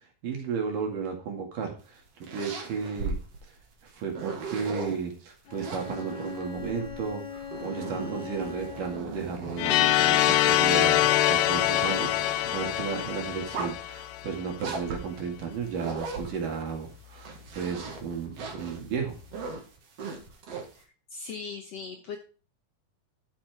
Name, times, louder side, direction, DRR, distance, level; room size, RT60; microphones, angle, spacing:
voice 1, 0.2-2.0 2.3-3.2 3.9-19.2, right 6 dB, 65° right, 2 dB, 3.7 m, -34 dB
sound 1, 1.8-5.0 5.5-10.0 10.5-12.9 13.4-13.9 14.6-16.7 17.1-20.8, right 4 dB, 50° right, 2.7 m, -39 dB
Bowed string instrument, 5.4-9.3, left 8 dB, 50° left, 4.3 m, -41 dB
sound 2, 9.6-14.4, left 14 dB, 80° left, 2.1 m, -24 dB
voice 2, 20.7-22.2, left 5 dB, 65° left, 4 dB, 1.7 m, -39 dB
12.5 x 7.2 x 3.5 m, 0.37 s
omnidirectional pair, 4.1 m